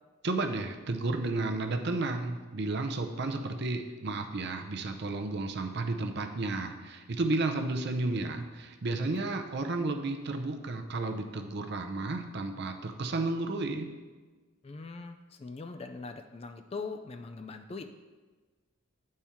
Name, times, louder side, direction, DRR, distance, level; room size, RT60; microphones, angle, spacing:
voice 1, 0.2-13.9, right 2 dB, 50° right, 5 dB, 0.6 m, -32 dB
voice 2, 14.6-17.8, left 4 dB, 30° left, 7 dB, 0.3 m, -41 dB
9.9 x 4.3 x 3.5 m, 1.3 s
head